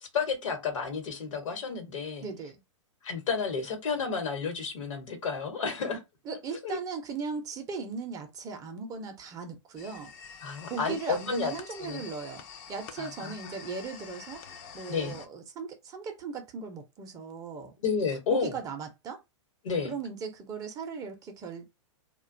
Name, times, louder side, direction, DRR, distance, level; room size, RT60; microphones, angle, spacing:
voice 1, 0.1-2.2 3.0-6.0 6.6-6.8 10.4-11.5 11.8-12.0 13.0-13.6 14.9-15.1 17.8-18.5 19.6-19.9, left 5 dB, 80° left, 1.0 m, -31 dB
voice 2, 2.2-2.6 6.3-10.1 10.6-12.4 12.7-14.4 14.7-17.8 18.3-19.2 19.8-21.8, right 5 dB, 20° right, 0.5 m, -38 dB
sound 1, 9.8-15.3, left 7 dB, 40° left, 0.4 m, -47 dB
2.5 x 2.2 x 2.5 m
hypercardioid pair, 135°, 16 cm